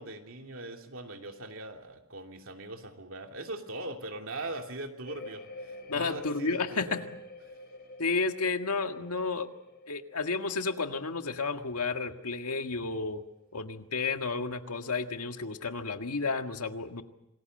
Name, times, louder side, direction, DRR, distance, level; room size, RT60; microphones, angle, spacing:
voice 1, 0.0-7.1, right 2 dB, 60° right, 3 dB, 2.9 m, -41 dB
sound 1, 5.1-13.7 14.0-14.5, left 1 dB, 45° left, 6.3 m, -48 dB
voice 2, 5.9-7.1 8.0-9.5 9.9-13.2 13.5-17.0, left 4 dB, 85° left, 6 dB, 1.7 m, -32 dB
27.0 x 20.5 x 7.8 m, 0.87 s
head